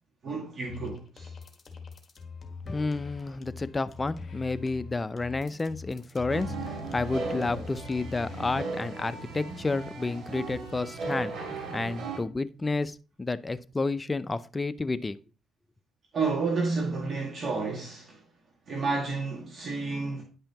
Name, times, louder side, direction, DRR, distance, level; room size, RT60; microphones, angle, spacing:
voice 1, 0.2-1.3 16.1-18.2 18.7-20.2, right 4 dB, 50° right, 2.1 m, -30 dB
sound 1, 0.7-8.7, left 5 dB, 40° left, 1.4 m, -43 dB
voice 2, 2.7-11.3 11.7-15.2, left 3 dB, 20° left, 0.5 m, -31 dB
sound 2, 6.3-12.2, right 3 dB, 75° right, 2.6 m, -37 dB
9.8 x 5.5 x 2.9 m
cardioid pair, 90°, 0 cm